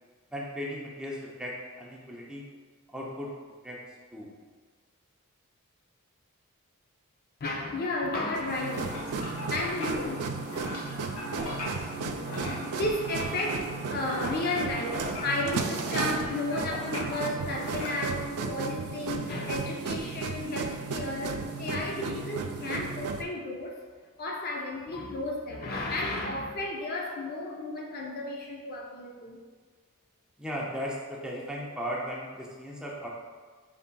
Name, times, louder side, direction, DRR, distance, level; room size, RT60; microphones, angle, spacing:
voice 1, 0.3-2.5 2.9-3.3 3.6-3.8 4.1-4.3 30.4-33.1, equal, 5° right, -4 dB, 0.5 m, -36 dB
voice 2, 7.4-8.9 9.5-10.3 12.3-23.8 24.2-29.4, left 2 dB, 45° left, -1 dB, 0.5 m, -33 dB
sound 1, 8.4-18.3, left 1 dB, 80° left, 1.2 m, -39 dB
sound 2, 8.4-23.2, right 4 dB, 80° right, 0.4 m, -34 dB
5.3 x 3.4 x 2.2 m, 1.5 s
head